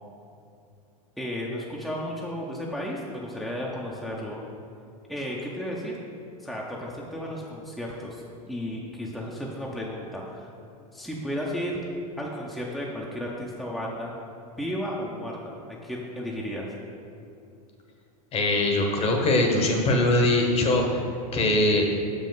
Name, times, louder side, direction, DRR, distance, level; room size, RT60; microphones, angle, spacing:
voice 1, 1.2-4.4 5.1-6.0 6.4-10.5 10.9-11.8 12.2-14.1 14.4-16.7, equal, ahead, -4 dB, 0.7 m, -33 dB
voice 2, 18.3-21.0 21.3-21.9, left 2 dB, 30° left, 2 dB, 1.1 m, -22 dB
6.5 x 5.3 x 3.9 m, 2.6 s
hypercardioid pair, 110°, 20 cm